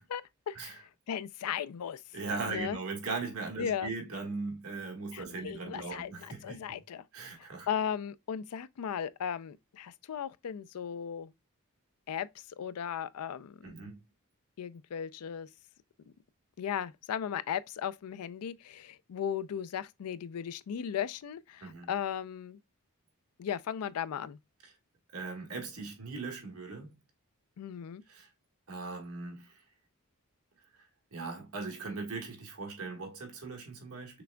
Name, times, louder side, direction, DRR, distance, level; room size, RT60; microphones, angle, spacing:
voice 1, 0.0-2.0 2.5-2.8 3.6-3.9 5.1-7.0 7.7-11.3 12.1-12.3 12.6-13.8 14.6-15.5 16.6-22.6 23.4-24.4 27.6-28.0, left 8 dB, 80° left, 0.4 m, -36 dB
voice 2, 2.1-6.8 7.1-7.7 13.6-14.0 21.6-21.9 24.6-24.7 25.1-27.0 28.1-28.3 28.7-29.6 30.7-34.2, right 3 dB, 70° right, 1.5 m, -39 dB
6.0 x 3.4 x 2.2 m
head